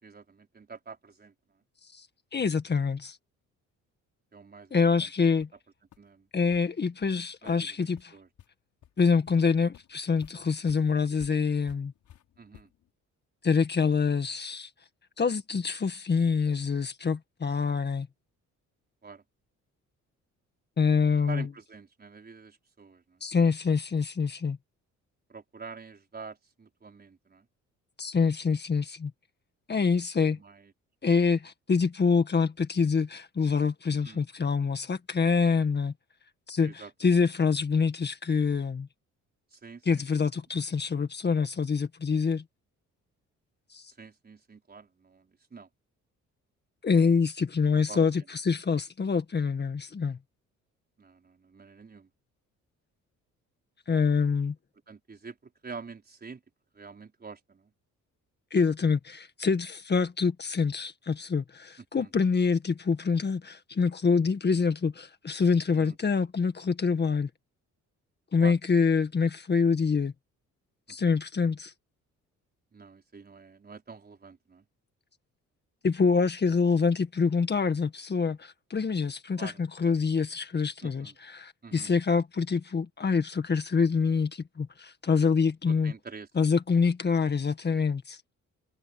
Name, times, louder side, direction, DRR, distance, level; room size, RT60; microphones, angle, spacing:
voice 1, 0.0-1.3 4.3-5.1 6.0-6.3 7.4-7.8 8.1-8.3 12.4-12.7 19.0-19.2 21.3-23.2 25.3-27.4 30.2-30.7 34.0-34.2 36.6-36.9 39.5-40.3 44.0-45.7 47.7-48.0 51.0-52.1 54.9-56.4 56.7-57.7 61.9-62.1 65.7-66.0 68.4-68.6 70.9-71.1 72.7-74.6 79.4-79.6 80.8-81.2 81.6-81.9 85.7-86.5, right 4 dB, 30° right, 4.8 m, -46 dB
voice 2, 2.3-3.2 4.7-5.5 6.3-8.1 9.0-11.9 13.4-14.7 15.2-18.1 20.8-21.5 23.2-24.6 28.0-29.1 29.7-30.4 31.0-35.9 36.5-38.9 39.8-42.4 43.7-43.9 46.8-50.2 53.9-54.5 58.5-67.3 68.3-70.1 70.9-71.7 75.8-85.9 86.3-88.2, left 5 dB, 35° left, 1.8 m, -26 dB
sound 1, 4.9-5.0 5.4-5.6 5.9-6.0 6.5-6.6 7.0-7.1 7.5-7.6 8.0-8.5 8.8-8.9 9.3-12.9, left 11 dB, 75° left, 6.3 m, -55 dB
cardioid pair, 90°, 30 cm